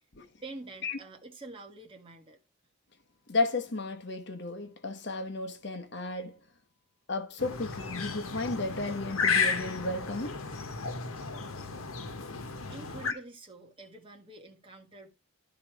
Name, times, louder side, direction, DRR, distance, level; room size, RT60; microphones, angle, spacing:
voice 1, 0.4-2.4 12.7-15.1, right 2 dB, 25° right, 1.6 m, -47 dB
voice 2, 3.3-6.4 7.1-10.4, left 3 dB, 55° left, 1.1 m, -33 dB
sound 1, 7.4-13.1, left 5 dB, 85° left, 1.1 m, -33 dB
12.0 x 4.0 x 4.8 m
head